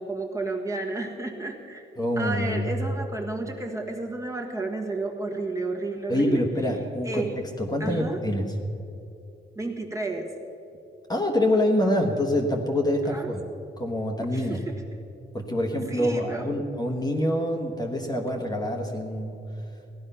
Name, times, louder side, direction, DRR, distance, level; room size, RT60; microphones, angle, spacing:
voice 1, 0.0-1.8 2.2-6.5 7.0-7.3 7.8-8.2 9.5-10.3 13.0-13.5 14.3-15.0 15.7-16.5, right 2 dB, 15° right, 2 dB, 1.5 m, -32 dB
voice 2, 2.0-2.7 6.1-8.5 11.1-13.4 13.8-14.6 15.3-19.4, left 1 dB, 20° left, 1 dB, 1.3 m, -26 dB
17.0 x 11.5 x 5.6 m, 2.7 s
wide cardioid pair, 140°, 19 cm